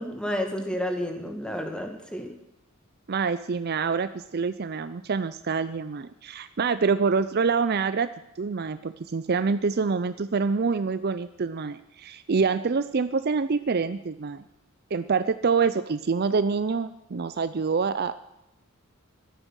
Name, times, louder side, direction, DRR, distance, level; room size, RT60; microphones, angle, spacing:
voice 1, 0.0-2.3, equal, 5° left, 4 dB, 2.1 m, -31 dB
voice 2, 3.1-8.1 8.4-14.4 14.9-18.1, right 5 dB, 45° right, 13 dB, 0.5 m, -26 dB
14.5 x 12.5 x 6.4 m, 0.88 s
head